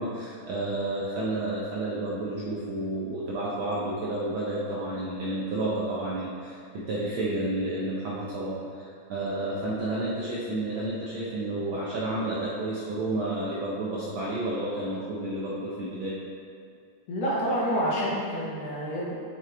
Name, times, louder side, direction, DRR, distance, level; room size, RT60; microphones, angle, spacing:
voice 1, 0.0-16.2, right 1 dB, 80° right, -6 dB, 1.1 m, -31 dB
voice 2, 17.1-19.1, equal, 65° left, -6 dB, 2.1 m, -28 dB
7.2 x 6.0 x 3.4 m, 2.3 s
omnidirectional pair, 3.3 m